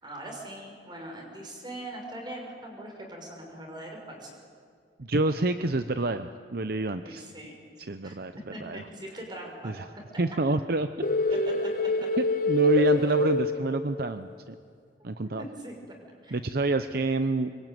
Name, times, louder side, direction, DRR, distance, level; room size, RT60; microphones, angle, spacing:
voice 1, 0.0-4.3 7.0-7.5 8.0-8.2 8.5-9.7 11.3-11.5 12.6-12.9 15.4-16.0 16.2-16.4, right 1 dB, 25° right, 1 dB, 6.1 m, -41 dB
voice 2, 5.0-7.3 7.8-8.3 8.6-8.8 9.6-9.8 10.2-11.1 12.2-14.5 15.0-15.4 16.3-17.5, right 2 dB, 60° right, 10 dB, 0.8 m, -28 dB
sound 1, 11.0-14.2, left 3 dB, 50° left, 1.2 m, -26 dB
25.0 x 23.0 x 9.3 m, 2.2 s
head